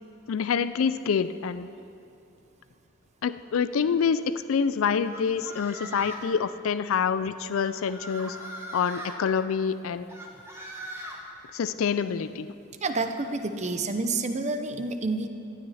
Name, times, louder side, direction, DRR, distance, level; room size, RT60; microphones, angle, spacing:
voice 1, 0.3-1.7 3.2-4.2 4.5-8.4 8.7-10.2 11.5-12.5, left 6 dB, 70° left, 13 dB, 0.4 m, -26 dB
sound 1, 5.1-6.3 7.5-9.2 10.1-11.2, equal, 10° right, 1.3 m, -40 dB
voice 2, 12.8-15.3, right 3 dB, 35° right, 7 dB, 0.7 m, -29 dB
15.0 x 12.5 x 4.2 m, 2.7 s
head